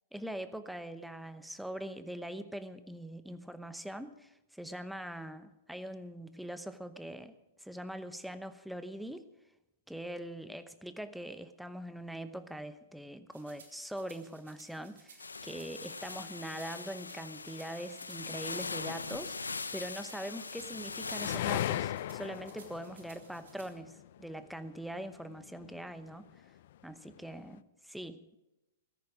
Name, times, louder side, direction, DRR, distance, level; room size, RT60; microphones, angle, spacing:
voice 1, 0.1-7.3 7.6-9.3 9.9-26.5 26.8-28.3, right 1 dB, ahead, 11 dB, 0.9 m, -43 dB
sound 1, 13.3-23.7, right 5 dB, 70° right, 3.6 m, -59 dB
sound 2, 15.2-21.4, left 4 dB, 90° left, 0.8 m, -41 dB
sound 3, 20.6-24.2 25.0-25.9, left 12 dB, 55° left, 0.5 m, -36 dB
15.5 x 14.0 x 5.0 m, 0.96 s
hypercardioid pair, 115°, 0 cm